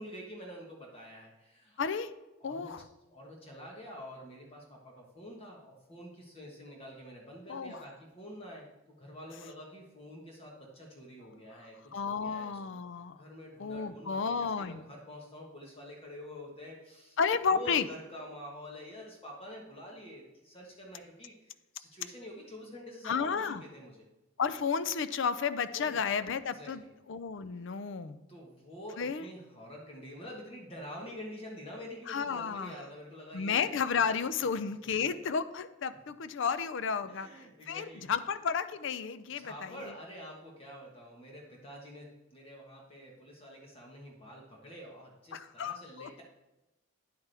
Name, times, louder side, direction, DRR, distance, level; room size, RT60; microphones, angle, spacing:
voice 1, 0.0-1.8 2.4-2.7 3.1-11.8 12.0-12.6 13.2-17.2 17.5-24.0 25.7-26.2 26.5-26.9 28.3-34.0 35.0-35.1 37.0-38.0 39.4-46.2, equal, 30° left, -1 dB, 1.3 m, -47 dB
voice 2, 1.8-2.1 2.4-2.8 7.5-7.8 11.9-13.2 13.6-14.8 17.2-17.8 23.0-23.6 24.4-26.8 27.1-28.2 29.0-29.3 32.1-32.7 33.3-37.3 37.7-39.9 45.3-46.1, left 6 dB, 60° left, 13 dB, 0.5 m, -32 dB
9.5 x 8.1 x 3.4 m, 1.0 s
head